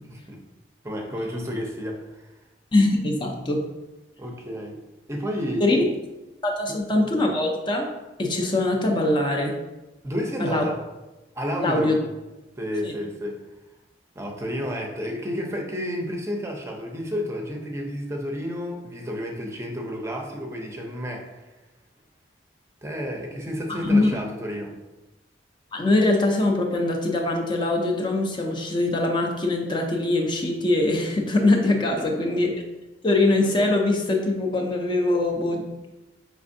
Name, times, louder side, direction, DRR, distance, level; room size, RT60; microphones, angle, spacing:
voice 1, 0.8-2.3 4.2-4.8 5.1-5.8 6.7-6.8 10.0-10.8 11.3-12.0 12.6-13.4 14.2-21.4 22.8-24.7, equal, 15° right, 1 dB, 0.6 m, -31 dB
voice 2, 2.7-3.6 5.6-5.8 6.4-7.9 8.2-9.6 10.4-10.6 11.6-12.0 12.8-12.9 23.7-24.2 25.7-32.5 33.0-35.7, left 2 dB, 25° left, 1 dB, 0.5 m, -22 dB
5.3 x 3.3 x 2.6 m, 1.1 s
head